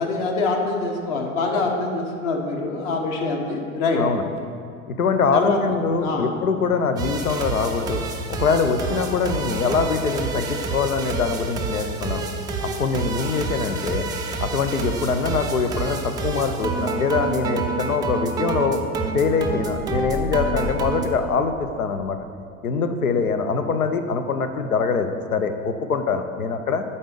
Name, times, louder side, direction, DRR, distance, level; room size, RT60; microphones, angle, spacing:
voice 1, 0.0-4.0 5.3-5.6 6.0-6.3, left 3 dB, 45° left, 2 dB, 1.4 m, -24 dB
voice 2, 4.9-8.0 8.3-12.3 12.6-14.1 14.4-18.8 19.1-22.2 22.6-26.8, left 5 dB, 80° left, 8 dB, 0.8 m, -23 dB
sound 1, 7.0-21.1, right 3 dB, 10° right, 0.3 m, -28 dB
sound 2, 19.5-22.1, left 3 dB, 20° left, 1.3 m, -34 dB
8.6 x 4.2 x 6.7 m, 2.3 s
figure-of-eight pair, 90°, 42 cm